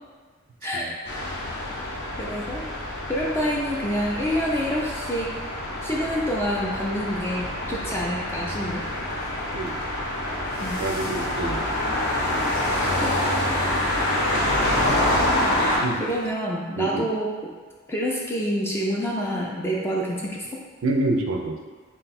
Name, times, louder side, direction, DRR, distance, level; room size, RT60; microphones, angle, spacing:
voice 1, 0.6-1.0 2.2-2.6 3.1-5.3 5.8-8.8 10.6-10.8 12.7-13.1 14.2-14.4 14.9-15.1 16.0-17.5 17.9-20.6, equal, 10° left, -3 dB, 0.3 m, -27 dB
sound 1, 1.0-15.8, left 1 dB, 50° left, 0.7 m, -26 dB
voice 2, 10.8-11.7 15.8-16.0 16.8-17.1 20.8-21.6, right 2 dB, 80° right, 3 dB, 0.4 m, -27 dB
sound 2, 11.0-16.3, equal, 85° left, 1.0 m, -45 dB
3.8 x 2.2 x 4.1 m, 1.5 s
head